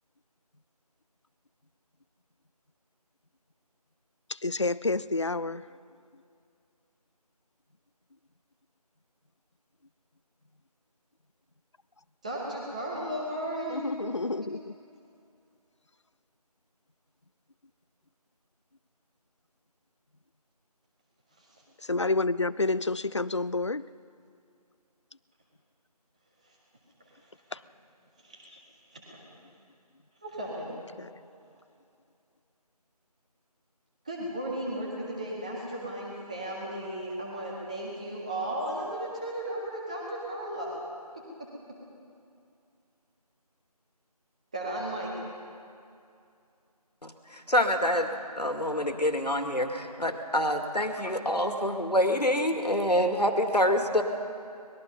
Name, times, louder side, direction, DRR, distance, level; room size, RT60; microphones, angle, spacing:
voice 1, 4.4-5.6 13.7-14.7 21.9-23.8, left 3 dB, 45° left, 17 dB, 0.4 m, -29 dB
voice 2, 12.2-14.0 21.4-21.5 26.4-26.5 27.5-27.6 28.2-28.5 28.9-29.2 30.2-30.8 34.1-40.8 41.1-41.5 44.5-45.1, right 1 dB, 10° right, -4 dB, 1.7 m, -35 dB
voice 3, 47.0-54.0, equal, 85° left, 5 dB, 2.4 m, -26 dB
25.0 x 20.5 x 5.5 m, 2.5 s
figure-of-eight pair, 170°, 20 cm